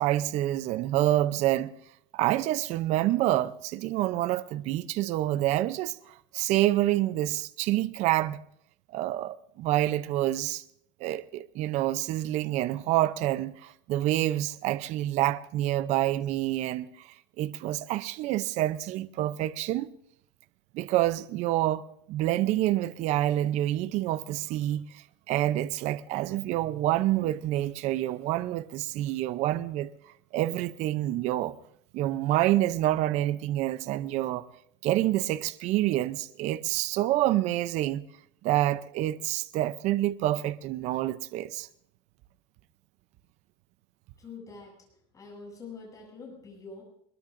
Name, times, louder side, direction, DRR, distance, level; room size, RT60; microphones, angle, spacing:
voice 1, 0.0-1.7 2.1-8.4 8.9-10.6 11.0-19.9 20.7-21.8 22.1-29.9 30.3-31.6 31.9-34.5 34.8-38.0 38.4-41.7, right 14 dB, 50° right, 0.6 m, -27 dB
voice 2, 44.2-44.9 45.1-46.8, left 4 dB, 20° left, 7.7 m, -45 dB
22.0 x 21.5 x 2.6 m
cardioid pair, 150°, 15 cm